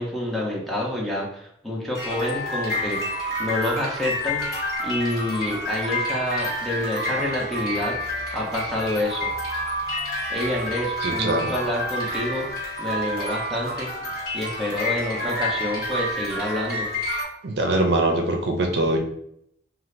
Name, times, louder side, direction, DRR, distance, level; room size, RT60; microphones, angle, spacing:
voice 1, 0.0-3.0 3.4-4.5 4.8-8.0 8.3-9.3 10.3-12.5 12.8-13.9 14.3-16.9, left 1 dB, ahead, -4 dB, 0.6 m, -28 dB
sound 1, 1.9-17.2, equal, 50° left, 1.5 m, -29 dB
voice 2, 11.0-11.5 17.4-19.0, right 2 dB, 65° right, 3 dB, 0.5 m, -22 dB
2.6 x 2.4 x 3.1 m, 0.71 s
head